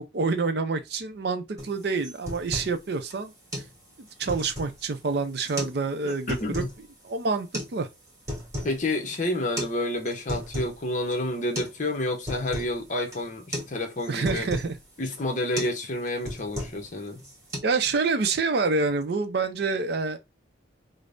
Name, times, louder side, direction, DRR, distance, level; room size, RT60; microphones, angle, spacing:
voice 1, 0.0-3.6 4.0-6.6 7.0-7.9 14.1-14.8 17.6-20.2, right 4 dB, 55° right, 0.5 m, -27 dB
sound 1, 1.6-1.7 2.0-2.8 3.1-3.2 3.5-3.7 4.1-4.8 5.4-5.8 6.1-6.8 7.5-7.7 8.1-8.8 9.1-9.2 9.6-9.7 10.1-10.8 11.1-11.2 11.6-11.8 12.0-12.7 13.1-13.3 13.5-13.7 14.0-14.7 15.1-15.3 15.6-15.8 16.1-16.9 17.2-17.6, equal, 15° right, 1.1 m, -34 dB
voice 2, 6.0-6.7 8.6-14.5 15.0-17.2, left 1 dB, 40° left, 0.7 m, -29 dB
5.0 x 2.0 x 2.5 m
head